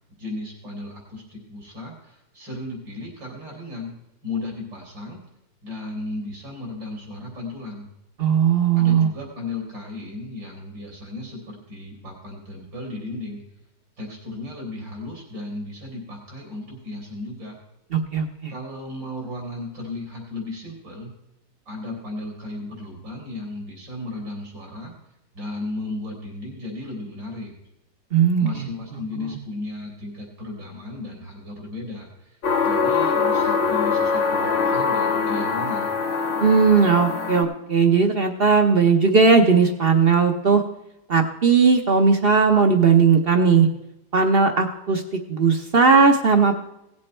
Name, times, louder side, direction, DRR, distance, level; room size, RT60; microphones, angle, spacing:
voice 1, 0.1-4.0 4.2-5.2 5.6-7.9 8.7-13.4 14.0-17.6 18.5-21.1 21.7-24.9 25.3-27.5 28.4-35.9, left 2 dB, 85° right, -2 dB, 4.3 m, -35 dB
voice 2, 8.2-9.1 17.9-18.5 28.1-28.7 29.2-29.3 36.4-40.6 41.1-43.7 44.1-45.0 45.3-46.6, right 5 dB, 50° right, 6 dB, 0.7 m, -17 dB
sound 1, 32.4-37.4, left 5 dB, 75° left, 2.2 m, -23 dB
17.5 x 7.6 x 4.3 m, 0.89 s
omnidirectional pair, 2.0 m